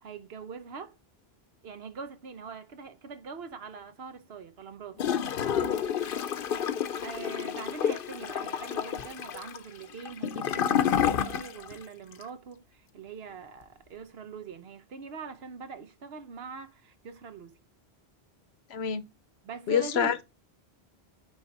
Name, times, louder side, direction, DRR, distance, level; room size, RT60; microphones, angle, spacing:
voice 1, 0.0-0.9 1.6-5.0 7.0-17.6 19.4-20.2, right 5 dB, 75° right, 1.1 m, -43 dB
Gurgling / Toilet flush, 5.0-11.8 12.1-12.2, left 8 dB, 65° left, 0.8 m, -29 dB
voice 2, 18.7-19.0 19.7-20.2, left 8 dB, 85° left, 1.0 m, -27 dB
9.3 x 3.2 x 4.1 m
omnidirectional pair, 1.1 m